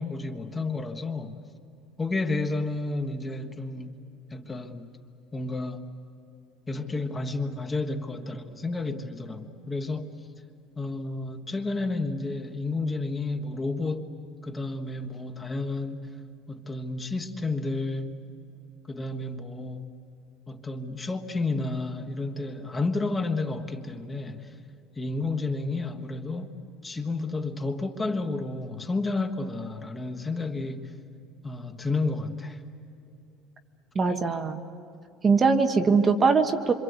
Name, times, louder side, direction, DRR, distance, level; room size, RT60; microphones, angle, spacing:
voice 1, 0.0-1.4 2.0-3.9 4.3-4.9 5.3-5.8 6.7-10.1 10.8-14.1 14.4-16.1 16.5-18.1 18.9-19.8 20.5-24.5 25.0-26.5 26.8-30.9 31.4-32.6, left 3 dB, 15° left, 1.4 m, -31 dB
voice 2, 33.9-34.6 35.2-36.7, right 4 dB, 25° right, 1.3 m, -21 dB
26.5 x 26.5 x 8.2 m
cardioid pair, 145°, 0 cm